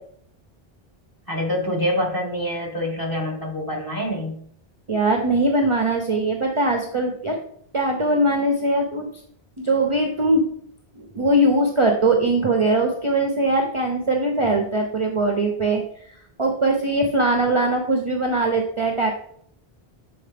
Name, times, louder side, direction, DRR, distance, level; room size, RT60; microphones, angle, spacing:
voice 1, 1.3-4.4, left 1 dB, 20° left, -2 dB, 1.6 m, -26 dB
voice 2, 4.9-7.4 7.7-9.1 9.6-10.4 11.0-15.8 16.4-19.1, right 2 dB, 35° right, 2 dB, 0.7 m, -21 dB
6.9 x 4.3 x 3.4 m, 0.63 s
omnidirectional pair, 1.0 m